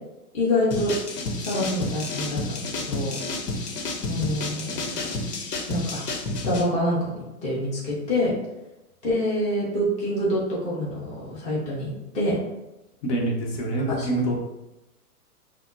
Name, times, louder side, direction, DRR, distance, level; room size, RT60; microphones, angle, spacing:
voice 1, 0.3-0.9 1.4-3.2 4.1-4.8 5.7-6.0 6.4-8.3 9.0-12.4 13.9-14.1, left 1 dB, 15° left, -7 dB, 0.8 m, -26 dB
sound 1, 0.7-6.6, left 2 dB, 80° left, 0.9 m, -30 dB
voice 2, 13.0-14.4, right 1 dB, 50° left, -1 dB, 1.0 m, -25 dB
5.6 x 2.0 x 2.6 m, 0.99 s
hypercardioid pair, 135°, 46 cm